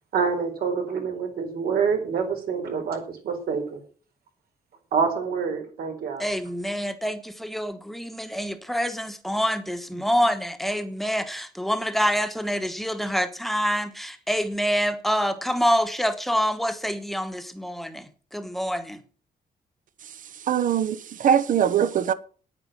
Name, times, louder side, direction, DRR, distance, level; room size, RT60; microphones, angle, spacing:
voice 1, 0.1-3.8 4.9-6.3, right 6 dB, 80° right, 4.5 m, -26 dB
voice 2, 6.2-19.0, equal, ahead, 1.2 m, -26 dB
voice 3, 20.5-22.1, right 9 dB, 60° right, 1.0 m, -22 dB
9.7 x 9.5 x 7.5 m
wide cardioid pair, 175°, 16 cm